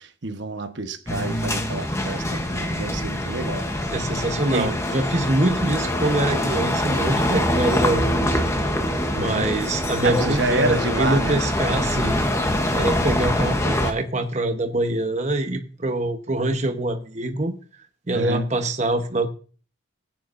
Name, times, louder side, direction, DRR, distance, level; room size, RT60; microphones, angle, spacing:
voice 1, 0.0-3.7 4.5-4.8 9.2-9.5 10.0-11.4 18.1-18.5, right 2 dB, 60° right, 1.0 m, -28 dB
sound 1, 1.1-13.9, left 1 dB, 15° left, 0.9 m, -24 dB
voice 2, 3.9-8.4 9.1-12.2 12.7-17.5 18.1-19.3, right 2 dB, 35° right, 1.0 m, -24 dB
17.0 x 9.3 x 2.6 m
head